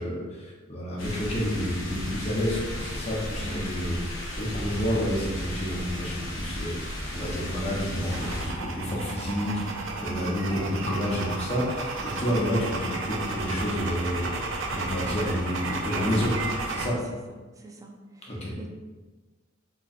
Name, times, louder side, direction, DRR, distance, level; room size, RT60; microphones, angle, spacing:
voice 1, 0.0-14.2 14.7-16.3 16.7-17.0 18.3-18.5, equal, 30° left, -4 dB, 0.8 m, -29 dB
sound 1, 1.0-8.5, left 1 dB, 70° left, 0.9 m, -35 dB
voice 2, 3.4-4.1 9.9-10.4 17.6-18.7, right 2 dB, 15° right, 2 dB, 0.3 m, -44 dB
sound 2, 8.1-16.9, right 3 dB, 65° right, 0.5 m, -33 dB
3.8 x 2.9 x 2.5 m, 1.3 s
head